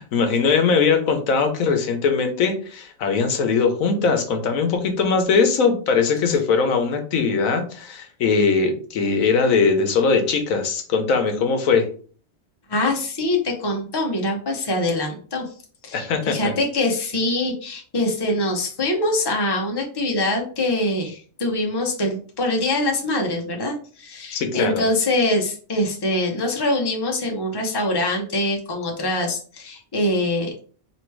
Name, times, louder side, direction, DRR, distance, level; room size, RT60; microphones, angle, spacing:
voice 1, 0.0-11.9 15.9-16.5 24.3-24.8, left 5 dB, 85° left, 6 dB, 1.2 m, -20 dB
voice 2, 12.7-15.5 15.8-30.5, left 1 dB, 20° left, 1 dB, 0.7 m, -24 dB
3.1 x 3.1 x 4.5 m, 0.42 s
omnidirectional pair, 1.4 m